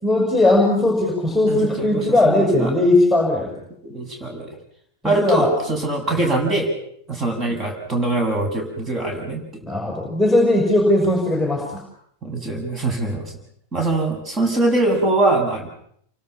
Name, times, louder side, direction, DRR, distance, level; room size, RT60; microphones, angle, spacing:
voice 1, 0.0-3.5 5.0-5.5 9.6-11.8, left 2 dB, ahead, 0 dB, 5.9 m, -18 dB
voice 2, 1.5-2.7 3.8-4.5 5.0-6.7 7.1-9.4 12.2-13.3 13.7-15.7, right 2 dB, 25° right, 3 dB, 8.0 m, -22 dB
28.5 x 24.5 x 6.0 m, 0.68 s
figure-of-eight pair, 90°, 0 cm